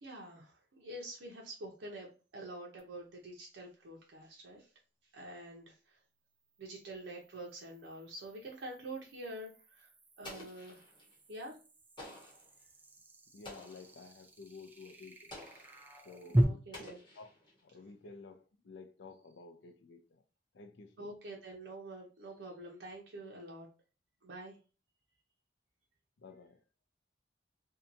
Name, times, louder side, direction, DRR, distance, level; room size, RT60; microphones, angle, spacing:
voice 1, 0.0-4.7 5.1-6.0 6.6-9.9 10.2-10.9 11.3-11.6 16.4-17.0 21.0-23.7 24.2-24.6, right 1 dB, 85° right, 0.7 m, -47 dB
sound 1, 2.8-2.9 6.3-16.4, right 1 dB, 10° right, 0.3 m, -39 dB
Explosion, 10.2-11.1 12.0-12.5 13.4-14.0 15.3-15.8 16.7-17.6, left 1 dB, 25° left, 1.0 m, -50 dB
voice 2, 13.3-15.3 16.0-16.8 17.1-17.3 17.6-20.2 20.5-21.2 26.2-26.6, left 3 dB, 85° left, 0.5 m, -52 dB
2.7 x 2.2 x 2.5 m
head